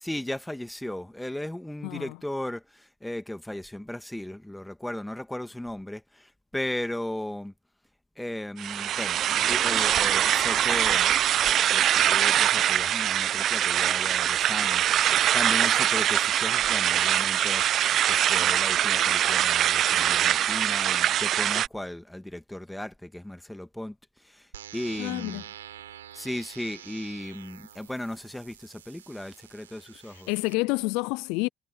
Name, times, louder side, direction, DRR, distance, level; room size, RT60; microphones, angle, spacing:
voice 1, 0.0-7.5 8.2-11.1 11.4-17.6 18.1-24.0 24.2-25.5 26.1-30.3, left 1 dB, 5° left, 2.1 m, -36 dB
voice 2, 1.8-2.2 25.0-25.4 30.1-31.5, left 26 dB, 75° left, 0.4 m, -29 dB
sound 1, 8.6-21.7, right 11 dB, 60° right, 0.9 m, -23 dB
sound 2, 24.5-30.5, right 11 dB, 90° right, 6.6 m, -47 dB
hypercardioid pair, 55°, 0 cm